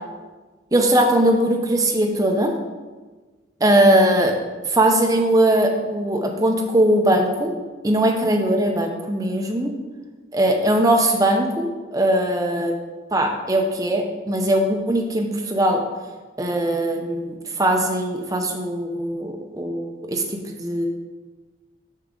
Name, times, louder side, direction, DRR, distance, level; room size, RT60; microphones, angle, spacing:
voice 1, 0.7-2.5 3.6-4.3 4.7-7.5 7.8-9.7 10.3-12.7 13.1-15.8 16.4-20.9, right 1 dB, 20° right, 3 dB, 0.6 m, -20 dB
6.6 x 6.0 x 3.8 m, 1.3 s
head